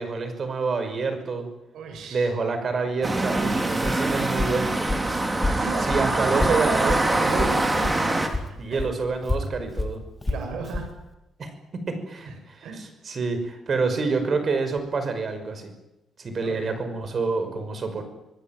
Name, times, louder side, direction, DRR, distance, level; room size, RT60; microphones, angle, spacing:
voice 1, 0.0-1.5 2.1-4.8 5.8-7.2 8.6-10.0 11.4-11.5 11.9-15.7 16.2-18.0, right 4 dB, 40° right, 8 dB, 5.8 m, -27 dB
voice 2, 1.7-2.3 5.5-8.2 8.7-8.9 10.3-10.9 12.3-12.4 12.6-12.8 16.4-16.7, right 5 dB, 75° right, 5 dB, 7.6 m, -33 dB
sound 1, 3.0-8.3, right 2 dB, 15° right, 3.5 m, -24 dB
Walk footsteps, 3.3-8.0 8.3-10.9, left 2 dB, 15° left, 2.7 m, -30 dB
26.5 x 19.0 x 9.2 m, 0.93 s
cardioid pair, 130°, 0 cm